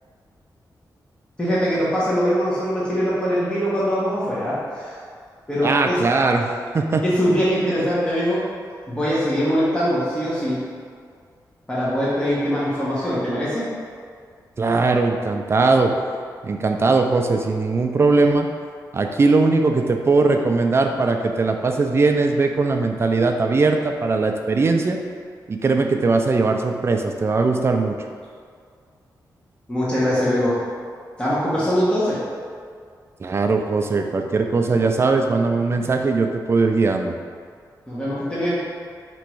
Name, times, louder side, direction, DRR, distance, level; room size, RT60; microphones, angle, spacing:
voice 1, 1.4-5.0 5.5-6.0 7.0-8.4 8.9-10.6 11.7-13.7 29.7-30.6 31.2-32.2 37.9-38.7, equal, 15° left, -9 dB, 1.0 m, -22 dB
voice 2, 5.6-6.5 6.7-7.0 14.6-15.9 16.4-18.5 18.9-25.0 25.5-28.0 33.2-37.1, right 3 dB, 35° right, 4 dB, 0.4 m, -19 dB
3.4 x 3.0 x 4.6 m, 2.1 s
wide cardioid pair, 115°, 7 cm